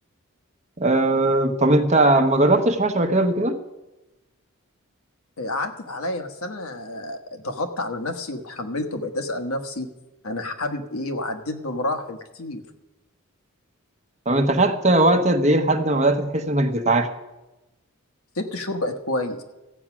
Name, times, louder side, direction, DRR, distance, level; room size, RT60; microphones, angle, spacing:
voice 1, 0.8-3.6 14.3-17.1, right 2 dB, 30° right, 6 dB, 0.9 m, -19 dB
voice 2, 5.4-9.9 10.2-12.6 18.3-19.4, left 1 dB, 75° left, 6 dB, 1.3 m, -29 dB
14.5 x 8.7 x 6.1 m, 1.0 s
head